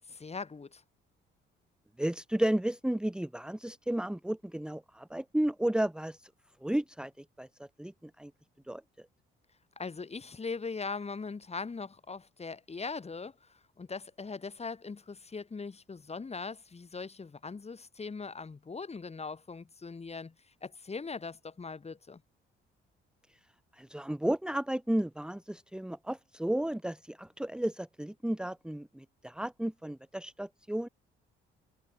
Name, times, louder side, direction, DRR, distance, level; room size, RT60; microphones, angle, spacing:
voice 1, 0.1-0.8 9.8-20.3 20.6-22.2, left 4 dB, 30° left, 5.4 m, -40 dB
voice 2, 2.0-6.2 6.6-8.3 8.7-8.8 23.7-30.9, right 1 dB, 5° right, 1.3 m, -33 dB
cardioid pair, 85°, 21 cm